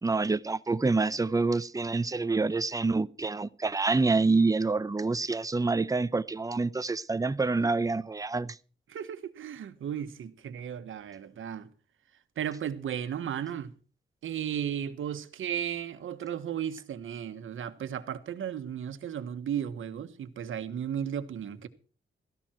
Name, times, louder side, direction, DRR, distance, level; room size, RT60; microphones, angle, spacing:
voice 1, 0.0-8.6, right 3 dB, 15° right, 0.8 m, -27 dB
voice 2, 8.9-11.7 12.4-13.7 14.2-21.7, right 9 dB, 90° right, 1.4 m, -35 dB
16.5 x 14.5 x 4.5 m
cardioid pair, 90°, 20 cm